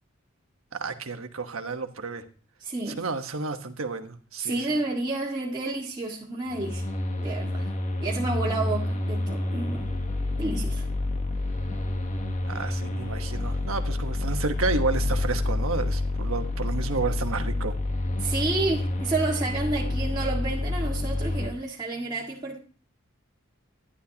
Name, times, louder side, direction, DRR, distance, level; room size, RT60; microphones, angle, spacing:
voice 1, 0.7-2.2 3.0-4.6 12.4-17.7, right 4 dB, 85° right, 7 dB, 1.2 m, -31 dB
voice 2, 2.6-3.0 4.4-6.9 7.2-7.7 8.0-9.8 10.4-10.9 18.2-22.6, right 2 dB, 20° right, -4 dB, 1.8 m, -30 dB
sound 1, 6.5-21.5, left 2 dB, 35° left, 1.2 m, -28 dB
11.0 x 10.5 x 2.8 m, 0.43 s
head